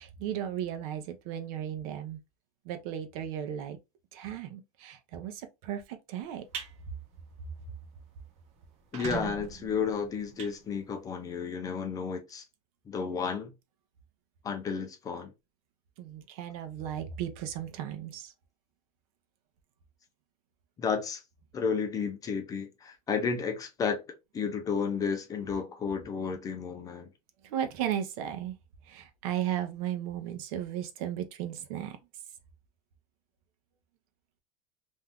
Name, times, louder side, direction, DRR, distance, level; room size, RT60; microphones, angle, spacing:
voice 1, 0.0-2.2 2.6-3.8 4.1-6.4 16.0-18.3 27.4-28.6 28.9-32.0, right 10 dB, 75° right, 0.7 m, -35 dB
sound 1, 6.2-6.7 7.2-7.4 7.8-7.9 8.1-8.2 8.7-11.3, right 6 dB, 35° right, 0.6 m, -40 dB
voice 2, 8.9-12.4 12.9-13.5 14.4-15.3 20.8-21.2 21.5-24.0 24.3-27.1, left 6 dB, 20° left, 0.4 m, -32 dB
2.6 x 2.3 x 3.4 m
cardioid pair, 170°, 18 cm